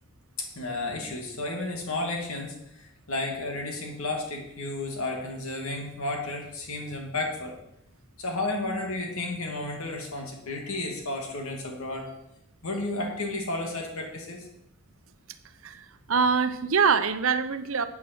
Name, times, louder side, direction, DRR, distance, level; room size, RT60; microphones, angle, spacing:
voice 1, 0.4-7.6 8.2-12.1 12.6-14.5, left 2 dB, 80° left, 1 dB, 2.4 m, -32 dB
voice 2, 16.1-17.8, right 5 dB, 70° right, 11 dB, 0.8 m, -23 dB
12.5 x 8.5 x 4.5 m, 0.79 s
head